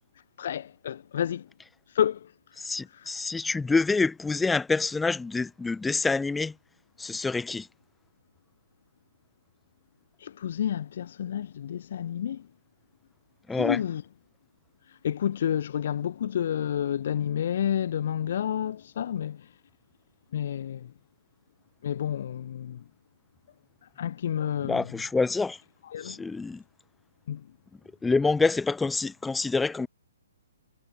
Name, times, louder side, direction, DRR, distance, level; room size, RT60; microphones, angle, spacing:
voice 1, 0.4-1.4 1.9-2.3 10.2-12.4 13.6-14.0 15.0-19.4 20.3-20.9 21.8-22.8 24.0-24.8 25.9-26.2 27.3-27.4, left 9 dB, 55° left, 1.1 m, -29 dB
voice 2, 2.6-6.5 7.0-7.7 13.5-13.8 24.6-25.6 26.0-26.6 28.0-29.9, left 3 dB, 5° left, 0.8 m, -27 dB
hypercardioid pair, 145°, 0 cm